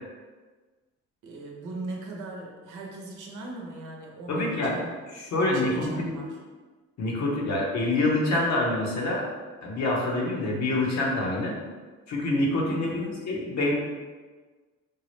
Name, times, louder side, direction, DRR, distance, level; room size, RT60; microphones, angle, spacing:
voice 1, 1.2-5.0 5.3-6.4 12.7-13.2, right 2 dB, 90° right, -1 dB, 0.8 m, -39 dB
voice 2, 4.3-4.7 5.1-6.1 7.0-9.3 9.6-11.6 12.1-13.7, left 2 dB, 65° left, -2 dB, 0.9 m, -26 dB
4.6 x 2.0 x 3.1 m, 1.4 s
cardioid pair, 90°, 30 cm